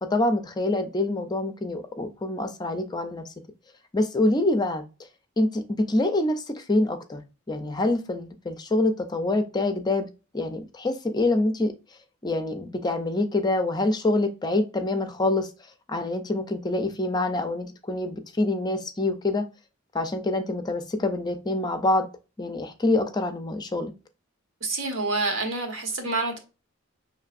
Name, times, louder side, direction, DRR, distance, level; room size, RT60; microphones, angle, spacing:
voice 1, 0.0-3.2 3.9-4.8 5.4-7.2 7.5-10.1 10.3-11.7 12.2-15.5 15.9-19.5 19.9-22.1 22.4-23.9, left 2 dB, 20° left, 0.5 m, -26 dB
voice 2, 24.6-26.4, right 3 dB, 70° right, 1.3 m, -27 dB
5.6 x 3.2 x 2.5 m
head